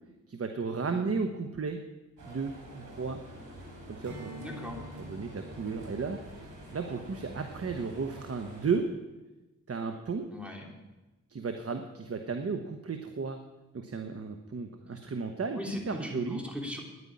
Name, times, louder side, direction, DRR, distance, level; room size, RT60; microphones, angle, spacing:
voice 1, 0.3-1.8 2.2-3.2 3.9-4.7 5.0-8.9 9.7-10.3 11.3-13.4 13.7-15.6 15.9-16.4, right 5 dB, 50° right, 6 dB, 1.1 m, -34 dB
sound 1, 2.2-8.8, right 1 dB, 85° right, 3.7 m, -47 dB
Strum, 4.0-8.8, equal, 65° right, 3.4 m, -50 dB
voice 2, 4.4-4.8 10.3-10.8 15.5-16.8, left 1 dB, 5° right, 0 dB, 3.2 m, -39 dB
10.0 x 9.5 x 9.7 m, 1.1 s
cardioid pair, 75°, 31 cm